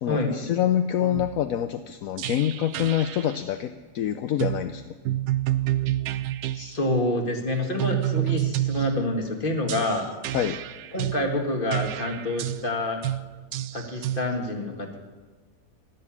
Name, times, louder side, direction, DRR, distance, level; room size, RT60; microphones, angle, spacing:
voice 1, 0.0-4.8 10.3-10.6, left 11 dB, 70° left, 9 dB, 1.0 m, -26 dB
sound 1, 1.0-1.4 2.2-3.4 4.4-4.6 5.0-6.6 7.8-9.1 9.7-11.2 11.7-12.6 13.0-13.2 13.5-14.2, right 14 dB, 90° right, 1.2 m, -29 dB
voice 2, 6.5-10.1 10.9-13.0 13.7-15.0, left 1 dB, 35° left, 3 dB, 1.9 m, -27 dB
14.5 x 11.0 x 7.3 m, 1.3 s
omnidirectional pair, 1.6 m